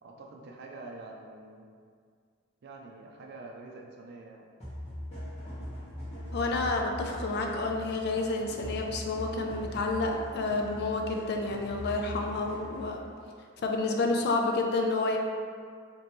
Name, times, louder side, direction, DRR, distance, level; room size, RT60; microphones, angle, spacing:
voice 1, 0.0-1.7 2.6-4.5, right 2 dB, 55° right, 0 dB, 0.5 m, -46 dB
sound 1, 4.6-13.0, equal, 35° left, 1.4 m, -41 dB
voice 2, 6.3-13.0 13.6-15.2, left 3 dB, 55° left, 2 dB, 0.4 m, -29 dB
3.0 x 2.9 x 4.4 m, 2.1 s
head